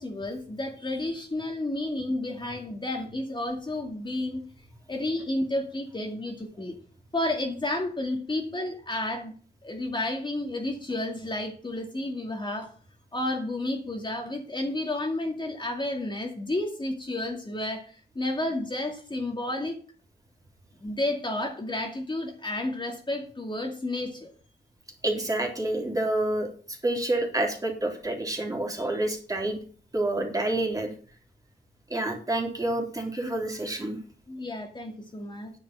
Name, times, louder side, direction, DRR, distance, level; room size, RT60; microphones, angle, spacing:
voice 1, 0.0-4.4 4.9-6.8 7.1-9.3 9.6-12.7 13.1-19.8 20.8-24.3 34.3-35.5, left 1 dB, 25° left, 2 dB, 2.4 m, -31 dB
voice 2, 25.0-29.6 29.9-30.9 31.9-34.0, right 1 dB, 20° right, 1 dB, 3.7 m, -28 dB
10.0 x 7.1 x 7.5 m, 0.41 s
wide cardioid pair, 100°, 18 cm